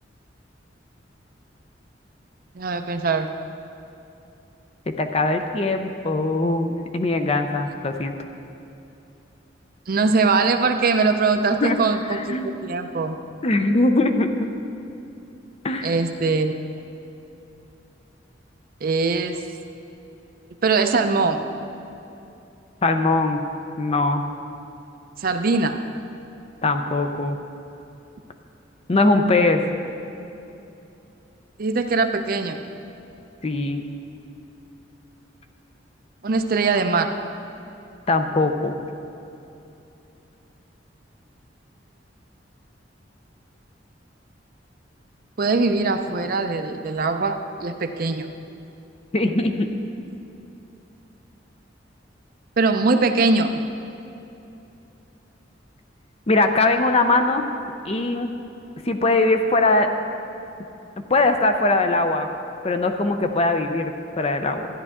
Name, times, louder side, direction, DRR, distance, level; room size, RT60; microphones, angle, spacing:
voice 1, 2.5-3.3 9.9-13.1 15.8-16.5 18.8-19.4 20.6-21.4 25.2-25.8 31.6-32.6 36.2-37.1 45.4-48.3 52.6-53.5, right 4 dB, 50° right, 7 dB, 0.5 m, -21 dB
voice 2, 4.9-8.1 11.6-11.8 12.1-12.6 13.4-14.3 15.6-15.9 22.8-23.4 23.8-24.2 26.6-27.4 28.9-29.6 33.4-33.9 38.1-38.7 49.1-49.7 56.3-57.4 57.8-58.3 58.8-59.9 61.1-62.3 62.6-64.7, left 2 dB, 35° left, 6 dB, 0.6 m, -21 dB
13.5 x 9.9 x 3.6 m, 2.8 s
head